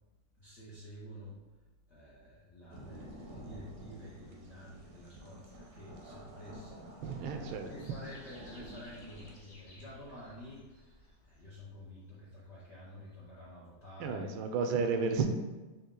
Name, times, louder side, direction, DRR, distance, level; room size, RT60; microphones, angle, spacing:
voice 1, 0.4-1.4 1.9-14.3, left 1 dB, 60° left, -7 dB, 0.7 m, -50 dB
sound 1, 2.7-9.3, right 1 dB, 60° right, 1.0 m, -50 dB
sound 2, 7.0-11.8 12.5-13.1 13.4-13.5, left 1 dB, 45° left, 1.2 m, -58 dB
voice 2, 7.0-7.7 14.0-15.3, right 5 dB, 80° right, 5 dB, 1.4 m, -32 dB
4.5 x 3.0 x 3.7 m, 1.2 s
omnidirectional pair, 2.3 m